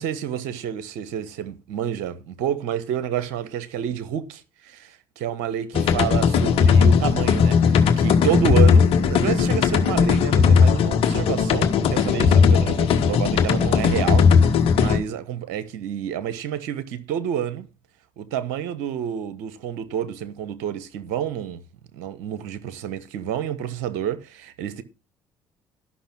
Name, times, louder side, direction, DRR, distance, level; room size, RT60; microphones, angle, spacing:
voice 1, 0.0-17.7 18.2-21.6 21.9-24.8, right 9 dB, 80° right, 1.2 m, -29 dB
sound 1, 5.7-15.0, left 6 dB, 65° left, 1.4 m, -17 dB
13.0 x 6.0 x 6.1 m
hypercardioid pair, 60°, 11 cm